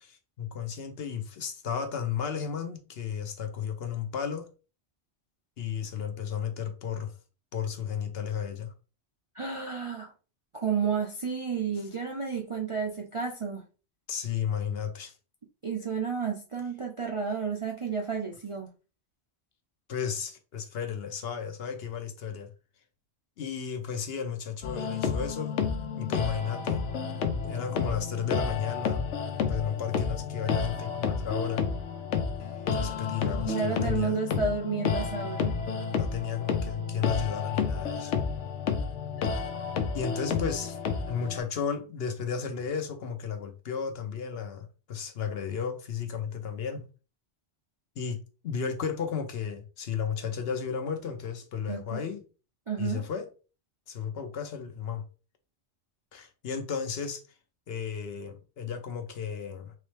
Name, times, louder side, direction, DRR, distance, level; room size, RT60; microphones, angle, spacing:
voice 1, 0.0-4.5 5.6-7.1 7.5-8.7 14.1-15.1 19.9-22.5 23.4-25.6 26.0-26.9 27.4-29.1 29.5-31.6 32.7-34.2 35.9-38.2 39.3-39.5 39.9-40.8 41.1-46.8 48.0-52.2 52.8-53.3 53.9-55.0 56.1-57.2 57.7-59.7, left 7 dB, 60° left, 0.9 m, -33 dB
voice 2, 9.3-10.1 10.5-13.6 15.6-18.7 33.4-35.6 51.7-52.0 52.7-53.1, right 5 dB, 45° right, 0.4 m, -31 dB
sound 1, 24.6-41.4, left 6 dB, 85° left, 1.0 m, -30 dB
3.7 x 3.1 x 3.2 m
omnidirectional pair, 1.2 m